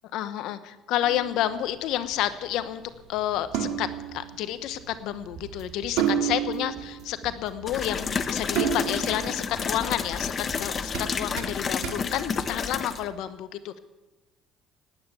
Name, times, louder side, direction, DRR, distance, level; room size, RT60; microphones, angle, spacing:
voice 1, 0.1-2.8 3.1-13.8, left 12 dB, 70° left, 12 dB, 1.0 m, -30 dB
sound 1, 1.0-13.1, right 9 dB, 80° right, 2.1 m, -33 dB
sound 2, 5.4-12.7, right 5 dB, 50° right, 2.7 m, -46 dB
sound 3, 7.7-13.1, left 6 dB, 35° left, 1.0 m, -30 dB
18.5 x 9.1 x 8.2 m, 1.1 s
supercardioid pair, 95°, 0 cm